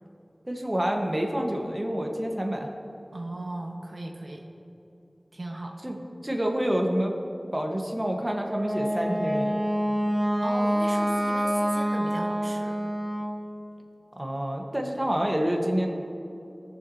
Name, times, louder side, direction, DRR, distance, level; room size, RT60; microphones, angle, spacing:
voice 1, 0.5-2.7 5.8-6.0 6.2-7.2 7.5-9.6 14.2-15.9, equal, 25° right, 1 dB, 1.2 m, -27 dB
voice 2, 3.1-4.5 5.3-5.7 10.4-12.8, right 1 dB, 70° right, 0 dB, 1.1 m, -37 dB
Wind instrument woodwind instrument, 8.4-13.4, equal, 40° right, 1.2 m, -27 dB
18.0 x 7.1 x 2.8 m, 2.8 s
wide cardioid pair, 45°, 0 cm